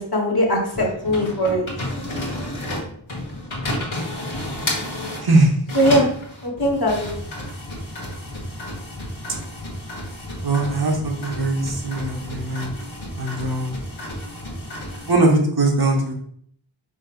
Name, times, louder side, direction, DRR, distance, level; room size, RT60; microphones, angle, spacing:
voice 1, 0.0-1.6 5.7-6.0 6.4-7.1, equal, 50° left, -1 dB, 1.3 m, -20 dB
sound 1, 0.7-5.3 5.7-15.1, left 1 dB, 75° left, 1.4 m, -31 dB
voice 2, 5.2-5.5 10.4-12.7 13.2-13.7 15.1-16.1, right 2 dB, 50° right, 0 dB, 1.0 m, -20 dB
5.2 x 4.2 x 2.4 m, 0.64 s
wide cardioid pair, 50°, 48 cm